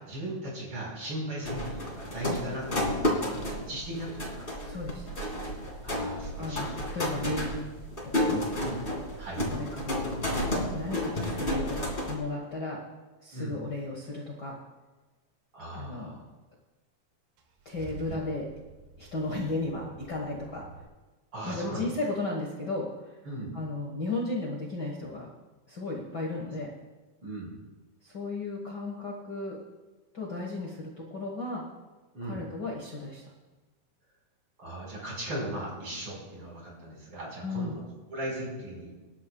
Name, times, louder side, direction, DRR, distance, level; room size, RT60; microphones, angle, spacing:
voice 1, 0.0-4.8 5.8-6.7 8.6-8.8 9.2-9.4 13.3-13.6 15.5-16.1 18.1-18.2 21.3-21.9 23.2-23.6 27.2-27.6 32.1-32.5 34.6-37.8 38.1-38.9, right 1 dB, 30° right, -4 dB, 5.3 m, -38 dB
sound 1, 1.4-12.1, left 1 dB, 20° left, 1.4 m, -31 dB
voice 2, 4.6-5.1 6.4-7.6 8.0-8.4 9.5-10.1 10.7-12.8 13.2-14.6 15.7-16.2 17.6-18.5 19.0-20.7 21.4-23.2 23.5-25.3 25.7-26.7 28.0-29.6 30.1-31.6 32.2-33.2 37.4-37.8, left 2 dB, 65° left, -2 dB, 1.0 m, -35 dB
Car / Engine starting / Idling, 17.4-20.8, right 5 dB, 75° right, 3.1 m, -49 dB
24.5 x 12.0 x 2.3 m, 1.2 s
omnidirectional pair, 4.5 m